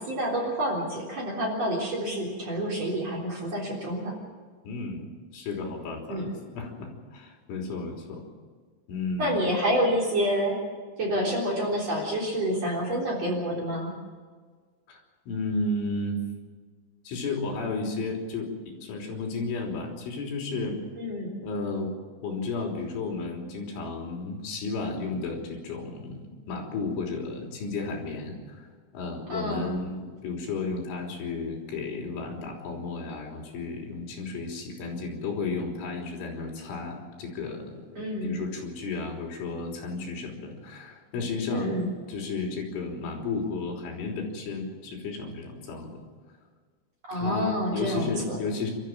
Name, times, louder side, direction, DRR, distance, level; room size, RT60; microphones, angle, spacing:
voice 1, 0.0-4.1 6.1-6.3 9.2-10.6 11.0-13.9 21.0-21.3 29.3-29.7 38.0-38.4 41.5-41.9 47.1-48.4, equal, 35° right, -2 dB, 4.2 m, -28 dB
voice 2, 4.7-8.2 8.9-9.4 14.9-15.0 15.3-16.2 17.1-20.8 21.4-21.9 22.2-28.7 28.9-37.7 37.9-41.8 42.1-46.0 47.1-48.7, left 3 dB, 70° left, 1 dB, 5.9 m, -33 dB
29.0 x 13.5 x 7.4 m, 1.5 s
omnidirectional pair, 5.8 m